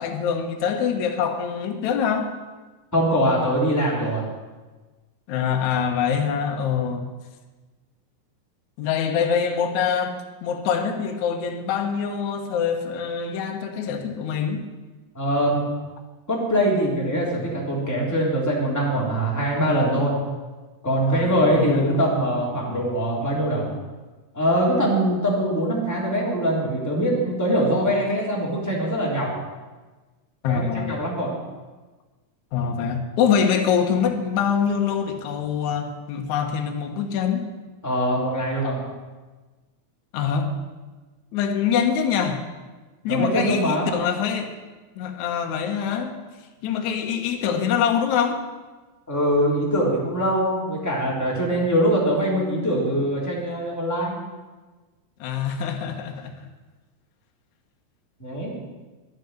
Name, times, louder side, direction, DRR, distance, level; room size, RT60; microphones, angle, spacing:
voice 1, 0.0-2.3 5.3-7.1 8.8-14.6 21.1-22.0 30.4-31.0 32.5-37.5 40.1-40.5 41.3-42.4 43.0-44.5 45.0-46.1 46.6-48.4 55.2-56.3, left 7 dB, 65° left, 3 dB, 2.3 m, -24 dB
voice 2, 2.9-4.2 15.1-15.6 16.3-20.1 20.8-23.6 24.3-29.3 30.4-31.4 37.8-38.8 43.1-43.9 49.1-54.2 58.2-58.5, equal, 5° left, -4 dB, 3.1 m, -23 dB
10.5 x 9.4 x 9.2 m, 1.3 s
omnidirectional pair, 4.0 m